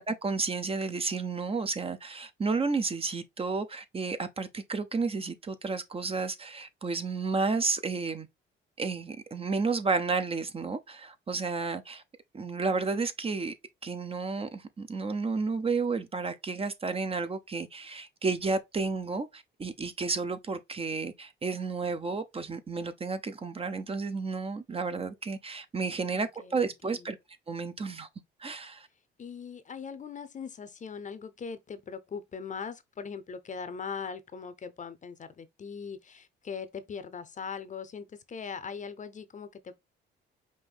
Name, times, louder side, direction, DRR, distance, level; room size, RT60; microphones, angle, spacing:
voice 1, 0.0-8.3 8.8-12.0 12.3-13.5 13.8-27.2 27.5-28.1 28.4-28.9, right 4 dB, 30° right, 0.6 m, -32 dB
voice 2, 26.1-27.1 29.2-39.8, left 6 dB, 40° left, 0.7 m, -40 dB
5.4 x 2.6 x 3.5 m
cardioid pair, 90°, 20 cm